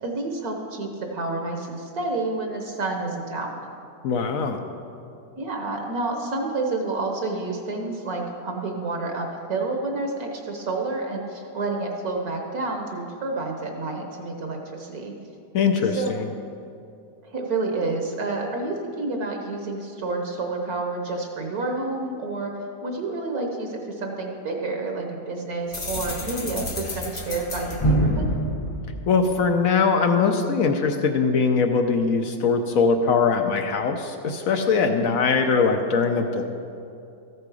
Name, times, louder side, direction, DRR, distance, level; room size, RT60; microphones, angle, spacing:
voice 1, 0.0-3.6 5.4-15.1 15.9-16.1 17.3-22.5 22.8-28.3 34.8-35.1, right 3 dB, 55° right, 2 dB, 1.3 m, -29 dB
voice 2, 4.0-4.6 15.5-16.3 29.1-36.4, left 5 dB, 65° left, 6 dB, 0.8 m, -21 dB
sound 1, 25.7-29.6, right 1 dB, 40° left, 0.4 m, -27 dB
14.0 x 7.7 x 4.8 m, 2.6 s
omnidirectional pair, 2.0 m